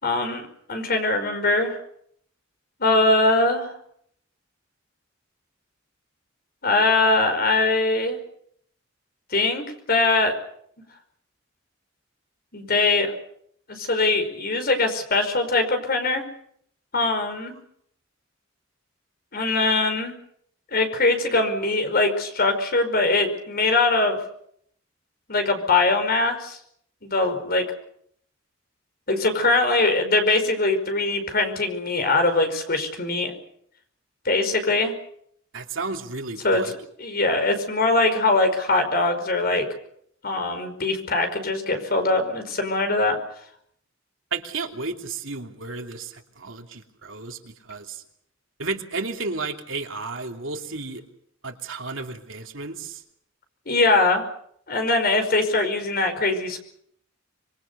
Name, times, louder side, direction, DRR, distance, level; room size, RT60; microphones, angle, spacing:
voice 1, 0.0-1.8 2.8-3.7 6.6-8.2 9.3-10.4 12.5-13.1 13.7-16.2 16.9-17.5 19.3-20.1 20.7-24.2 25.3-26.6 27.0-27.6 29.1-33.3 34.3-34.9 36.4-39.7 40.2-43.2 53.7-54.2 54.7-56.6, left 2 dB, 50° left, 7 dB, 5.2 m, -22 dB
voice 2, 35.5-36.7 44.3-48.0 48.6-51.0 51.4-53.0, right 3 dB, 75° right, 4 dB, 2.8 m, -33 dB
26.0 x 23.5 x 6.9 m, 0.68 s
head